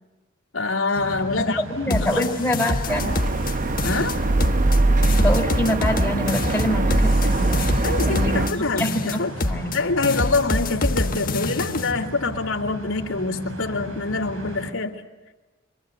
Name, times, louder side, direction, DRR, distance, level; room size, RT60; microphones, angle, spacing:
voice 1, 0.5-1.6 1.9-2.3 3.8-4.2 7.8-9.3 9.7-15.1, left 3 dB, 80° left, -1 dB, 2.6 m, -25 dB
sound 1, 0.9-14.7, equal, 80° right, 4.4 m, -36 dB
voice 2, 1.7-3.1 5.2-7.7 8.0-9.8, left 1 dB, 10° left, 2 dB, 3.8 m, -25 dB
sound 2, 1.9-3.5 3.8-4.8 5.0-8.5 8.8-9.8 10.0-11.9, left 2 dB, 45° left, 1.4 m, -26 dB
sound 3, 2.9-8.5, right 2 dB, 40° right, 0.9 m, -22 dB
28.0 x 25.0 x 8.2 m, 1.2 s
head